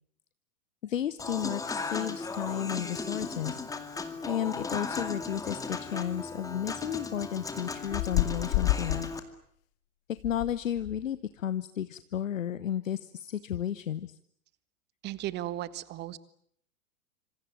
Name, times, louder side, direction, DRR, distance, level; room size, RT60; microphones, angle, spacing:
voice 1, 0.8-3.6 4.3-9.1 10.2-14.2, left 10 dB, 60° left, 15 dB, 1.1 m, -33 dB
Human voice / Acoustic guitar / Piano, 1.2-9.2, left 4 dB, 10° left, 2.2 m, -36 dB
sound 1, 7.9-9.1 10.2-10.5 10.8-11.0, left 16 dB, 35° left, 1.6 m, -29 dB
voice 2, 15.0-16.2, right 14 dB, 25° right, 17 dB, 1.4 m, -35 dB
26.5 x 26.0 x 7.5 m, 0.66 s
figure-of-eight pair, 110°, 43 cm